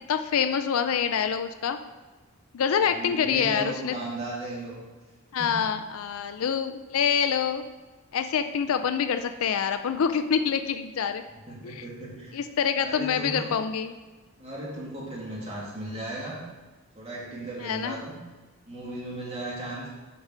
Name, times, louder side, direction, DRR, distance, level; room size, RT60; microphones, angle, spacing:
voice 1, 0.1-1.8 2.5-4.0 5.3-7.6 8.1-11.2 11.6-11.9 12.3-13.9 17.6-18.0, left 7 dB, 80° left, 9 dB, 0.4 m, -26 dB
voice 2, 2.8-4.8 5.4-5.7 11.5-12.4 12.8-13.5 14.4-16.4 16.9-18.2 18.7-19.9, right 1 dB, 30° right, -5 dB, 2.2 m, -36 dB
8.6 x 4.7 x 5.5 m, 1.3 s
head